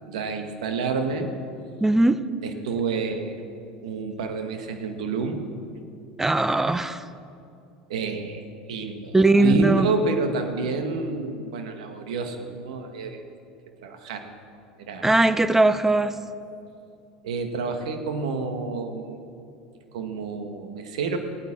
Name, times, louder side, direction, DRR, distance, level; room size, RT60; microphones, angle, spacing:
voice 1, 0.1-1.3 2.4-3.4 3.8-5.4 7.9-13.2 13.8-14.3 14.8-15.1 17.2-19.2 19.9-21.2, right 4 dB, 75° right, 5 dB, 1.7 m, -29 dB
voice 2, 1.8-2.2 6.2-7.0 9.1-9.9 15.0-16.1, right 2 dB, 10° right, 13 dB, 0.8 m, -19 dB
17.5 x 9.5 x 7.4 m, 2.5 s
hypercardioid pair, 85°, 4 cm